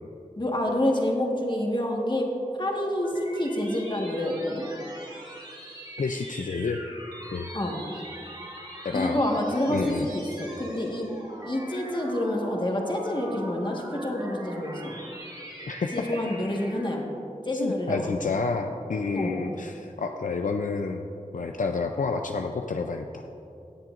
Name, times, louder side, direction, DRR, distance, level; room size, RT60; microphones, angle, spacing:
voice 1, 0.4-2.3 2.6-4.7 7.5-7.8 8.9-11.1 11.4-14.9 15.9-17.0 17.4-18.3 19.1-19.4, left 1 dB, 35° left, 0 dB, 1.5 m, -28 dB
sound 1, 2.4-17.1, right 1 dB, 30° right, 1.8 m, -42 dB
voice 2, 6.0-6.8 7.3-7.5 8.8-9.2 9.7-10.1 15.7-15.9 17.5-21.1 21.3-23.2, left 4 dB, 75° left, 4 dB, 0.4 m, -29 dB
17.5 x 7.4 x 2.5 m, 2.7 s
wide cardioid pair, 50°, 14 cm